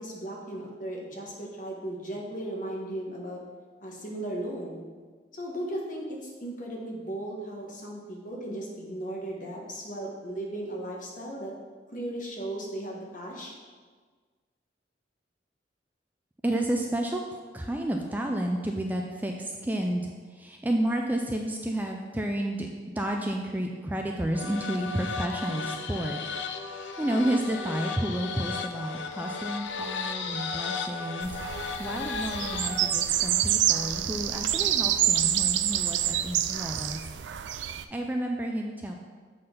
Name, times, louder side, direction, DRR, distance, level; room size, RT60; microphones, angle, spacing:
voice 1, 0.0-3.4 3.8-4.8 5.3-11.5 11.9-13.5, right 1 dB, 45° left, -2 dB, 1.3 m, -36 dB
voice 2, 16.4-17.2 17.5-22.7 23.0-37.1 37.5-39.0, right 1 dB, 10° right, 2 dB, 0.4 m, -31 dB
sound 1, 24.3-33.1, left 5 dB, 85° left, 0.5 m, -35 dB
sound 2, 31.2-37.8, right 11 dB, 80° right, 0.4 m, -27 dB
7.6 x 3.9 x 5.2 m, 1.5 s
head